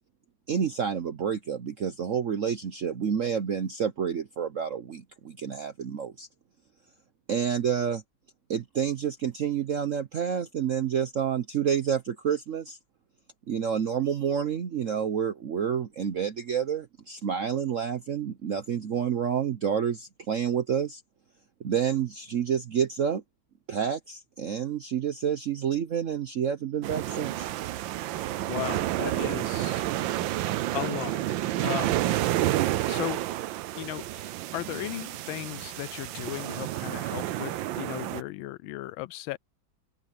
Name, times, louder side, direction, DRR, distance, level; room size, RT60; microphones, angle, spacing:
voice 1, 0.5-6.3 7.3-8.0 8.5-12.8 13.5-21.0 21.6-23.2 23.7-27.5, right 8 dB, 60° right, 0.9 m, -29 dB
sound 1, 26.8-38.2, right 14 dB, 80° right, 1.4 m, -30 dB
voice 2, 28.5-29.8 30.7-32.0 32.8-33.2 33.7-39.4, left 18 dB, 85° left, 1.4 m, -36 dB
open air
omnidirectional pair, 2.2 m